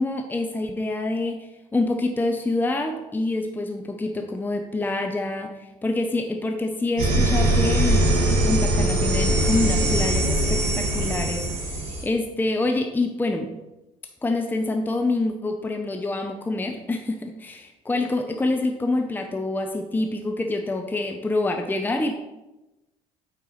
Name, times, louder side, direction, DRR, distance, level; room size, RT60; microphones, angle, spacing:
voice 1, 0.0-13.5 14.2-22.2, left 2 dB, 10° left, 4 dB, 0.7 m, -26 dB
sound 1, 7.0-12.0, right 1 dB, 70° right, 2.2 m, -21 dB
8.9 x 4.6 x 3.2 m, 1.0 s
hypercardioid pair, 55°, 17 cm